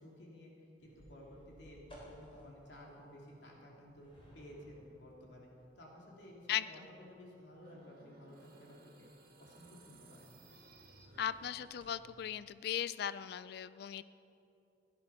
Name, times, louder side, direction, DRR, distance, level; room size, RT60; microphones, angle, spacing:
voice 1, 0.0-4.1 4.3-5.5 5.8-9.1 9.4-10.2, left 1 dB, 80° left, -2 dB, 2.8 m, -54 dB
sound 1, 0.8-12.0, equal, 30° left, 3.6 m, -62 dB
sound 2, 7.5-11.8, right 2 dB, 55° right, 2.0 m, -61 dB
voice 2, 11.2-14.0, left 10 dB, 60° left, 16 dB, 0.3 m, -38 dB
16.5 x 11.0 x 5.7 m, 2.7 s
head